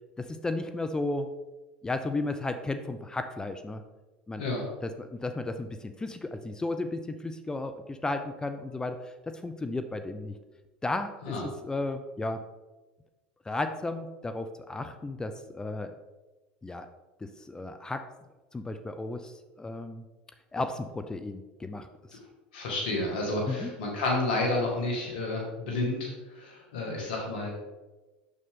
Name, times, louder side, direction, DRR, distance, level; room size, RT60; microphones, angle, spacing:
voice 1, 0.2-1.3 1.8-3.8 4.3-4.4 4.8-10.3 10.8-11.3 11.6-12.4 13.5-15.9 16.6-16.9 17.5-18.0 18.5-20.0 20.5-21.9 23.5-23.7, left 2 dB, 15° left, 8 dB, 0.6 m, -34 dB
voice 2, 22.5-27.5, left 2 dB, 70° left, -1 dB, 2.0 m, -30 dB
6.7 x 6.3 x 3.7 m, 1.1 s
hypercardioid pair, 90°, 5 cm